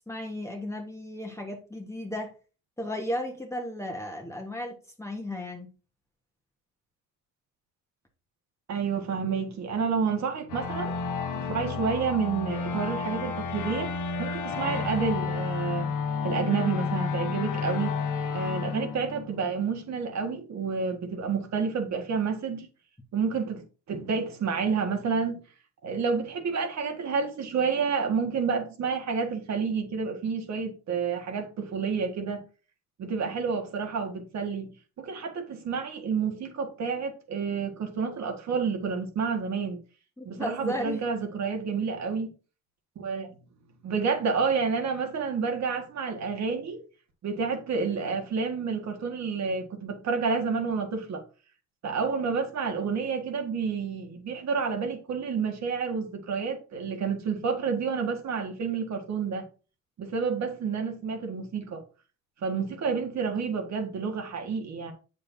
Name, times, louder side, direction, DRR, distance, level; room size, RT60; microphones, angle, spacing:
voice 1, 0.1-2.3 2.8-5.7 40.2-41.0, left 1 dB, 10° left, 1.3 m, -34 dB
voice 2, 8.7-10.9 11.3-15.9 16.2-18.0 18.3-22.7 23.1-25.4 25.8-32.4 33.0-39.8 40.3-42.3 43.0-43.3 43.8-46.8 47.2-51.2 51.8-59.4 60.0-61.8 62.4-64.9, right 5 dB, 60° right, 1.8 m, -29 dB
sound 1, 10.5-19.8, left 5 dB, 85° left, 1.3 m, -31 dB
7.6 x 6.9 x 2.7 m
cardioid pair, 90°, 30 cm